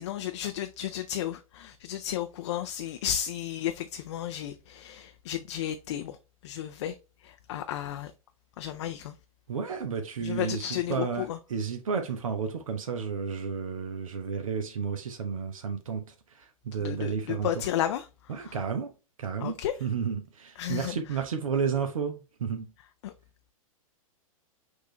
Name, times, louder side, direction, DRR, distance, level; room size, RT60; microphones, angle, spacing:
voice 1, 0.0-6.2 6.4-8.1 8.6-9.1 10.2-11.4 16.8-18.6 19.4-19.7 20.6-21.0 23.0-23.1, left 11 dB, 55° left, 0.4 m, -33 dB
voice 2, 9.5-17.5 18.3-18.9 19.2-22.7, right 6 dB, 70° right, 0.8 m, -32 dB
6.2 x 2.6 x 3.1 m
figure-of-eight pair, 105°, 18 cm